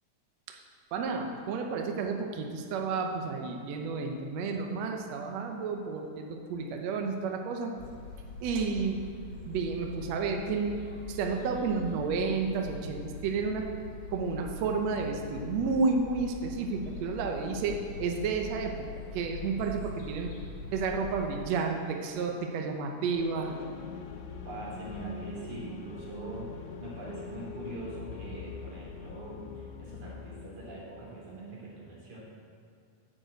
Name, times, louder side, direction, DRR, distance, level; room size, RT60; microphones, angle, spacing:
voice 1, 0.9-7.7 8.4-9.0 9.5-10.8 11.1-13.7 14.1-20.3 20.7-23.5, right 4 dB, 80° right, 3 dB, 1.5 m, -31 dB
sound 1, 7.8-21.5, left 3 dB, 45° left, 1.8 m, -43 dB
sound 2, 23.1-30.6, left 6 dB, 90° left, 1.6 m, -43 dB
voice 2, 24.4-32.2, right 2 dB, 55° right, -5 dB, 4.2 m, -42 dB
10.0 x 6.8 x 7.9 m, 2.4 s
omnidirectional pair, 4.3 m